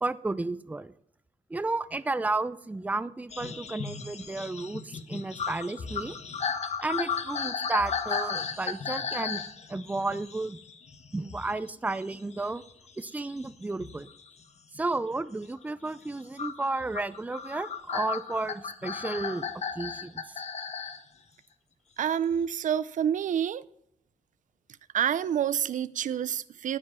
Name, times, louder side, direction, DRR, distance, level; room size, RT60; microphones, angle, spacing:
voice 1, 0.0-0.9 1.5-6.2 6.8-9.4 9.7-10.6 11.1-12.6 13.0-14.1 14.7-19.5 19.8-20.4, right 2 dB, 10° right, 14 dB, 0.5 m, -32 dB
sound 1, 3.3-11.6 11.9-14.3 14.8-15.2 16.4-21.0 22.3-22.4, left 6 dB, 55° left, 1.2 m, -35 dB
voice 2, 22.0-23.6 24.9-26.8, right 9 dB, 70° right, 16 dB, 0.6 m, -28 dB
14.5 x 9.9 x 5.6 m, 0.68 s
wide cardioid pair, 140°, 14 cm